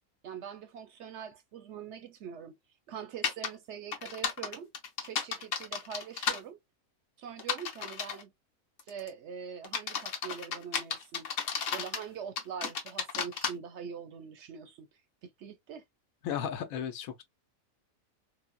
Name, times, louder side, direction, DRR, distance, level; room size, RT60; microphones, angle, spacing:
voice 1, 0.2-2.6 2.9-4.7 5.0-6.6 7.2-8.3 8.9-11.3 11.7-14.9 15.2-15.8, right 7 dB, 65° right, 0.8 m, -43 dB
sound 1, 3.2-3.5 3.9-6.4 7.4-8.2 8.8-9.1 9.6-12.0 12.4-13.5, left 7 dB, 65° left, 1.1 m, -33 dB
voice 2, 16.2-17.2, left 8 dB, 85° left, 1.1 m, -34 dB
4.0 x 2.0 x 2.2 m
omnidirectional pair, 1.4 m